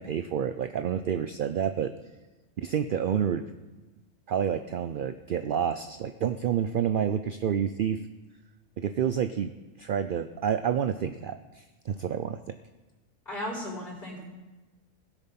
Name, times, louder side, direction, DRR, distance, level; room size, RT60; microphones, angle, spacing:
voice 1, 0.0-1.9 2.6-3.4 4.3-8.0 8.8-9.5 9.8-12.5, right 8 dB, 60° right, 10 dB, 0.6 m, -29 dB
voice 2, 13.2-14.2, left 1 dB, 40° left, -2 dB, 4.6 m, -35 dB
17.0 x 8.1 x 5.8 m, 1.1 s
omnidirectional pair, 1.3 m